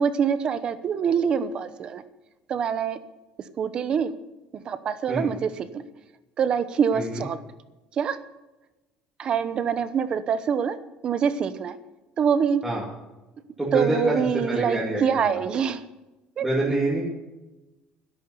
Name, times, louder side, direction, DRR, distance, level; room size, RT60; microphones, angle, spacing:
voice 1, 0.0-2.0 2.5-3.0 3.6-4.1 4.5-5.8 6.4-7.4 7.9-8.2 9.2-10.8 11.0-11.8 12.2-12.6 13.7-15.8 16.4-16.5, right 7 dB, 30° right, 13 dB, 0.9 m, -25 dB
voice 2, 6.9-7.2 12.6-12.8 13.6-15.4 16.4-17.0, right 1 dB, 5° right, -6 dB, 2.7 m, -26 dB
13.0 x 11.0 x 8.2 m, 1.1 s
cardioid pair, 180°, 3 cm